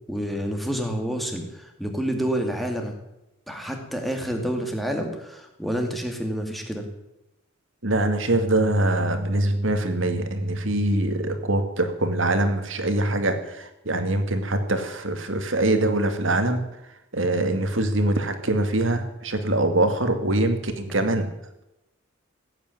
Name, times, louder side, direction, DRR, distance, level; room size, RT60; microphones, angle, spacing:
voice 1, 0.1-2.9 3.5-6.8, equal, ahead, 3 dB, 2.3 m, -28 dB
voice 2, 7.8-16.6 17.1-21.3, right 1 dB, 70° right, 7 dB, 2.2 m, -23 dB
16.5 x 9.0 x 9.4 m, 0.90 s
head